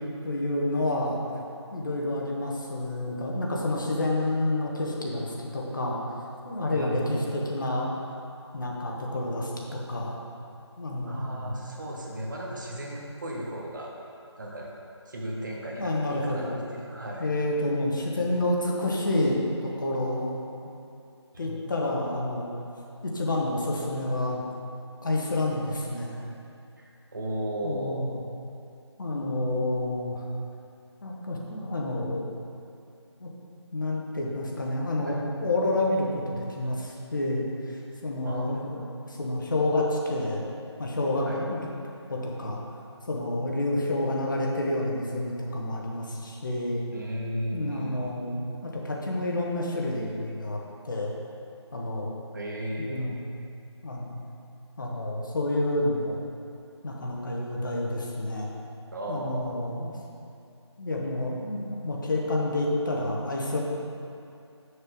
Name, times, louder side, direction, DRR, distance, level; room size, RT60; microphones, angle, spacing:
voice 1, 0.2-1.2 1.7-6.0 6.4-7.9 8.5-10.2 10.8-11.5 15.8-16.6 17.2-20.4 21.4-22.5 23.0-24.4 25.0-26.2 27.6-28.2 29.0-30.2 31.0-32.2 33.2-33.3 33.7-40.4 40.8-41.7 42.1-42.6 43.1-46.9 47.5-50.6 50.9-51.1 51.7-52.1 52.8-53.3 53.8-54.2 54.8-56.2 56.8-58.5 59.1-59.9 60.8-63.6, left 1 dB, 45° left, -2 dB, 1.1 m, -29 dB
voice 2, 6.7-7.3 11.0-13.9 14.4-14.7 15.0-17.3 21.3-21.6 26.8-28.2 35.0-35.3 38.2-38.8 41.2-41.5 46.9-48.0 52.3-53.1 58.9-59.6, right 1 dB, 40° right, -2 dB, 1.2 m, -35 dB
6.6 x 6.5 x 4.6 m, 2.6 s
figure-of-eight pair, 160°, 15 cm